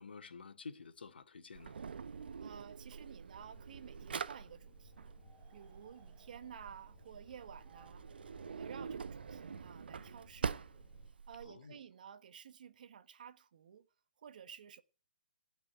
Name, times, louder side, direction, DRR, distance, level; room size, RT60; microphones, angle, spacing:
voice 1, 0.0-1.8 11.4-11.8, left 4 dB, 80° left, 2.4 m, -50 dB
Drawer open or close, 1.6-11.5, right 6 dB, 70° right, 0.9 m, -45 dB
voice 2, 2.4-5.1 5.5-8.1 8.5-10.8 11.3-13.9 14.2-14.8, right 8 dB, 55° right, 1.4 m, -53 dB
sound 1, 3.3-11.1, left 6 dB, 30° left, 2.5 m, -65 dB
sound 2, 4.9-9.8, right 6 dB, 20° right, 2.2 m, -69 dB
17.0 x 6.0 x 9.7 m
hypercardioid pair, 155°, 5 cm